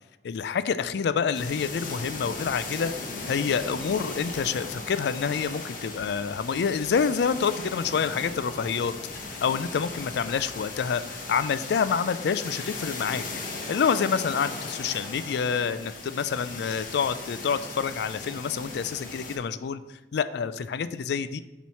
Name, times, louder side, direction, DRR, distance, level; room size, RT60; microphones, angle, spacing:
voice 1, 0.2-2.9 3.3-13.2 13.7-19.8 20.1-21.4, left 6 dB, 65° left, 13 dB, 0.3 m, -27 dB
sound 1, 1.3-19.4, left 3 dB, 50° left, 1.0 m, -38 dB
7.1 x 3.1 x 5.6 m, 1.1 s
head